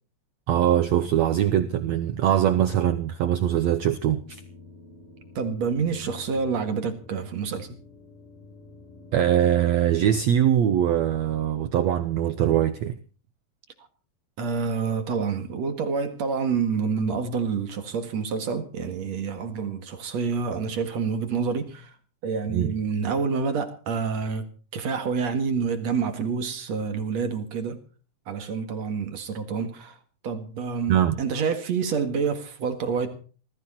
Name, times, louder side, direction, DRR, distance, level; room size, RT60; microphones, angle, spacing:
voice 1, 0.5-4.4 9.1-13.0 22.5-22.7 30.9-31.2, right 10 dB, 90° right, 1.5 m, -22 dB
sound 1, 4.0-11.1, left 3 dB, 75° left, 5.9 m, -49 dB
voice 2, 5.4-7.8 14.4-21.9 22.2-24.5 24.7-27.8 28.3-30.0 30.2-33.1, right 5 dB, 50° right, 2.6 m, -28 dB
20.0 x 15.0 x 4.3 m
omnidirectional pair, 4.3 m